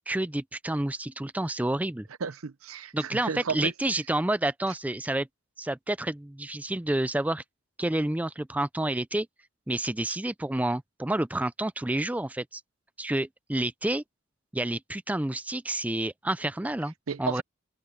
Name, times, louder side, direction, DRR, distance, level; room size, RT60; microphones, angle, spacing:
voice 1, 0.0-2.1 2.9-5.3 5.6-7.4 7.8-9.3 9.7-12.6 13.0-14.0 14.5-16.9 17.2-17.4, right 1 dB, 5° right, 0.4 m, -29 dB
voice 2, 2.2-3.7 17.1-17.4, right 5 dB, 90° right, 0.7 m, -33 dB
head